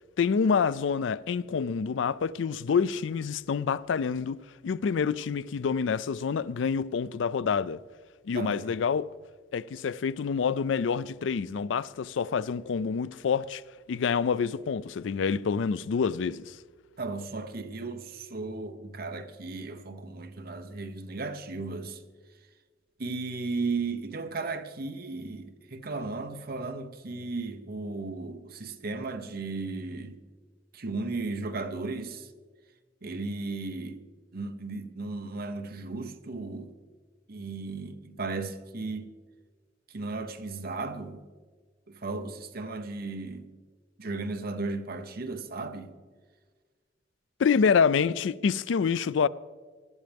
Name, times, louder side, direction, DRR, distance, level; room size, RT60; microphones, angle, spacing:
voice 1, 0.2-7.8 8.3-9.1 9.5-13.6 13.9-16.5 47.4-49.3, left 6 dB, 75° left, 0.4 m, -27 dB
voice 2, 8.3-8.7 17.0-22.0 23.0-30.2 30.7-32.3 33.0-34.0 34.3-36.7 37.3-39.1 39.9-41.2 41.9-43.5 44.0-45.9, right 3 dB, 55° right, 0.9 m, -35 dB
19.5 x 11.5 x 3.5 m
head